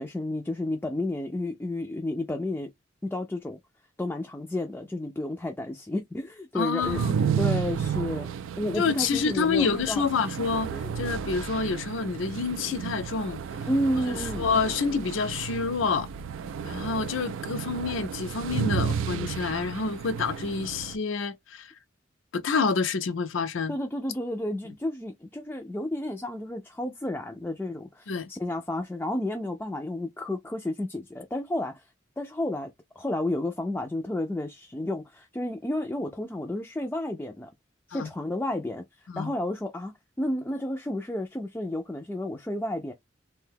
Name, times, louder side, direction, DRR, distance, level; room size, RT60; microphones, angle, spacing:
voice 1, 0.0-2.7 3.0-3.6 4.0-7.0 7.4-8.3 8.6-10.0 10.7-11.0 13.7-14.5 23.7-31.8 32.2-32.7 33.0-37.5 37.9-38.8 39.2-39.9 40.2-42.9, left 1 dB, 10° left, 0.3 m, -31 dB
voice 2, 6.5-7.1 8.8-10.7 11.0-13.4 14.1-16.1 16.6-21.7 22.3-23.8 28.1-28.3 37.9-38.1 39.1-39.3, left 5 dB, 80° left, 0.5 m, -28 dB
sound 1, 6.8-21.0, right 7 dB, 90° right, 0.3 m, -32 dB
2.6 x 2.2 x 3.3 m
head